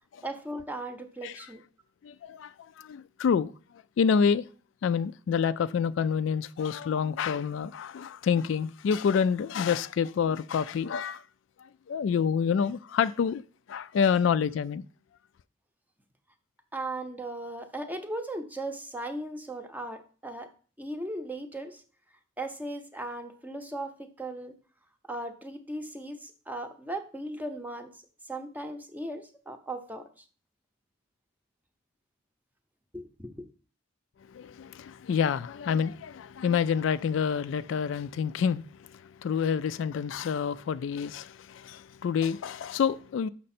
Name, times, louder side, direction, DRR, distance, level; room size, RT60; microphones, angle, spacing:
voice 1, 0.2-1.6 16.7-20.5 20.8-21.8 22.4-24.5 25.1-27.9 28.3-30.0 32.9-33.4, right 1 dB, 10° right, 0.7 m, -37 dB
voice 2, 2.0-3.5 4.0-4.4 4.8-11.2 11.6-13.4 13.7-14.8 34.3-43.3, left 6 dB, 65° left, 0.3 m, -28 dB
6.5 x 5.9 x 4.2 m
head